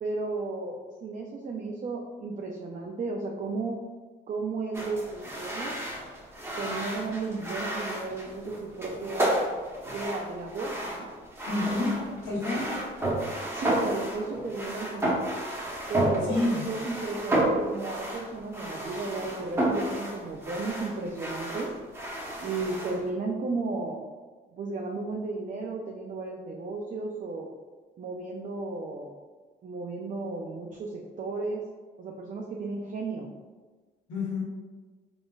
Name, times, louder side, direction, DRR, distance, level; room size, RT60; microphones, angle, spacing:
voice 1, 0.0-3.8 4.3-5.8 6.6-9.4 9.9-11.1 13.5-15.2 15.9-21.7 22.4-24.0 24.6-27.5 28.0-29.1 29.6-31.6 32.0-33.3, right 3 dB, 40° right, 0 dB, 0.5 m, -34 dB
sound 1, 4.7-23.1, right 1 dB, 10° right, 1.0 m, -32 dB
voice 2, 11.5-12.7 16.3-16.7 34.1-34.4, left 2 dB, 80° left, -6 dB, 1.3 m, -28 dB
3.8 x 3.8 x 2.3 m, 1.4 s
cardioid pair, 90°, 20 cm